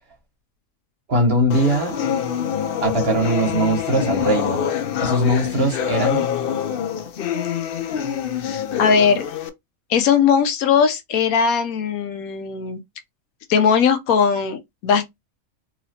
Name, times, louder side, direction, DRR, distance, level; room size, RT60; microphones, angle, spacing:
voice 1, 1.1-2.0 2.8-4.7 5.0-6.3, right 1 dB, 45° right, 1.5 m, -20 dB
sound 1, 1.5-9.5, left 8 dB, 65° left, 0.5 m, -25 dB
voice 2, 8.8-9.3 9.9-12.8 13.5-15.2, left 6 dB, 90° left, 1.2 m, -19 dB
3.9 x 3.1 x 2.8 m
omnidirectional pair, 1.5 m